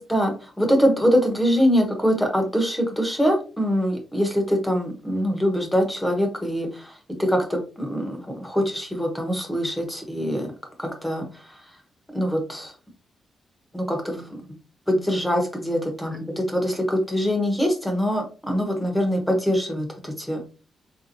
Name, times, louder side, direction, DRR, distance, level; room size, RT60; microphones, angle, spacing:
voice 1, 0.0-6.9 7.2-10.5 10.8-11.2 12.1-12.7 13.7-14.4 14.9-20.4, equal, 5° left, 3 dB, 1.1 m, -23 dB
4.4 x 3.6 x 2.6 m, 0.34 s
wide cardioid pair, 140°, 0 cm